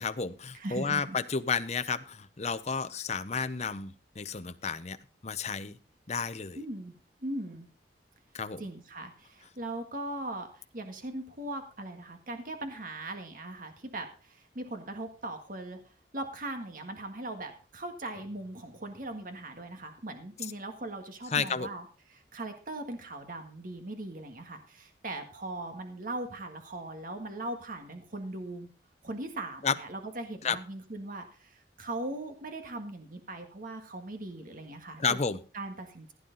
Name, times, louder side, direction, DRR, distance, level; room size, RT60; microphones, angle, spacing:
voice 1, 0.0-5.0 5.2-5.8 6.1-6.6 8.3-8.6 20.4-20.5 21.3-21.7 29.6-29.8 30.4-30.6 35.0-35.4, left 5 dB, 40° left, 11 dB, 0.8 m, -31 dB
voice 2, 0.5-1.2 6.6-7.0 7.2-7.7 8.6-15.8 16.1-21.8 22.1-28.7 29.0-35.2 35.5-36.1, right 2 dB, 50° right, 6 dB, 1.7 m, -39 dB
16.0 x 9.3 x 4.0 m, 0.37 s
head